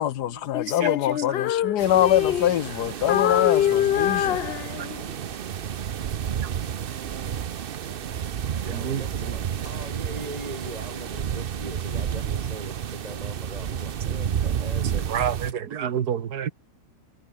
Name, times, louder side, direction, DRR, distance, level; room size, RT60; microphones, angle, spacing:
voice 1, 0.0-4.4, left 12 dB, 85° left, 1.4 m, -24 dB
Female singing, 0.5-2.8 3.1-5.1, left 11 dB, 70° left, 0.6 m, -24 dB
voice 2, 0.8-1.2 3.3-3.4 4.7-4.9 6.4-6.5 8.7-9.6 10.5-10.9 15.1-16.5, right 8 dB, 80° right, 1.8 m, -30 dB
sound 1, 1.8-15.5, right 8 dB, 50° right, 0.7 m, -31 dB
voice 3, 8.6-15.0, right 1 dB, 25° right, 5.9 m, -40 dB
omnidirectional pair, 1.7 m